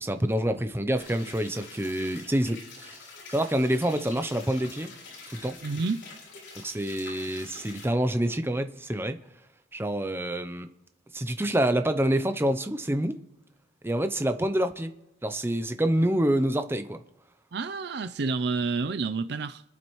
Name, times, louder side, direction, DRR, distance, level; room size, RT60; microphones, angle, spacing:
voice 1, 0.0-3.0 3.3-4.9 5.3-5.6 6.6-9.2 9.7-10.7 11.1-13.2 13.8-14.9 15.2-17.0, right 1 dB, 10° right, 0.6 m, -27 dB
sound 1, 1.0-7.8, left 3 dB, 70° left, 5.9 m, -46 dB
voice 2, 5.6-6.0 17.5-19.6, right 4 dB, 55° right, 0.5 m, -29 dB
26.5 x 11.0 x 3.2 m
head